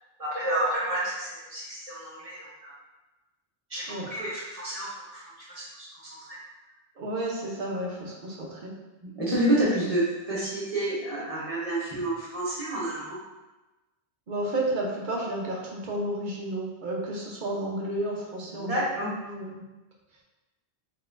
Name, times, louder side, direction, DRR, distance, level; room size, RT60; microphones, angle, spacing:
voice 1, 0.2-2.7 3.7-6.4 9.0-13.2 18.5-19.1, right 1 dB, 35° right, -7 dB, 1.1 m, -29 dB
voice 2, 7.0-8.7 14.3-19.6, right 1 dB, 50° right, -3 dB, 0.8 m, -32 dB
3.9 x 3.7 x 2.5 m, 1.1 s
omnidirectional pair, 1.1 m